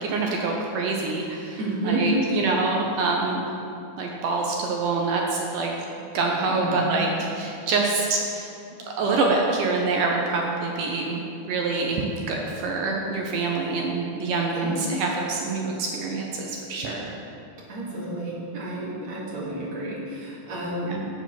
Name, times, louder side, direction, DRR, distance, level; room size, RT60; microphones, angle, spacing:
voice 1, 0.0-1.6 1.8-3.4 4.0-8.5 9.0-17.1 20.9-21.0, right 3 dB, 75° right, 0 dB, 2.1 m, -26 dB
voice 2, 1.6-2.3 6.5-7.0 14.5-14.8 17.7-21.1, right 1 dB, 50° right, -8 dB, 3.1 m, -30 dB
7.4 x 7.1 x 5.8 m, 2.6 s
omnidirectional pair, 4.2 m